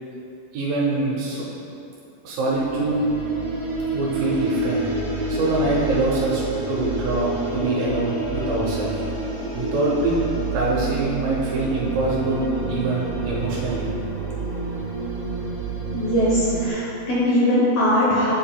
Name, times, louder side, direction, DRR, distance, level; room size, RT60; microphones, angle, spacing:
voice 1, 0.5-1.5 2.2-3.0 3.9-4.8 5.3-6.4 6.7-9.0 9.5-10.2 10.5-13.9, right 2 dB, 85° right, -5 dB, 2.5 m, -24 dB
sound 1, 2.4-16.7, right 3 dB, 70° right, 0.5 m, -28 dB
voice 2, 15.9-18.3, left 1 dB, 70° left, -8 dB, 1.4 m, -20 dB
8.8 x 6.0 x 2.2 m, 2.8 s
omnidirectional pair, 3.9 m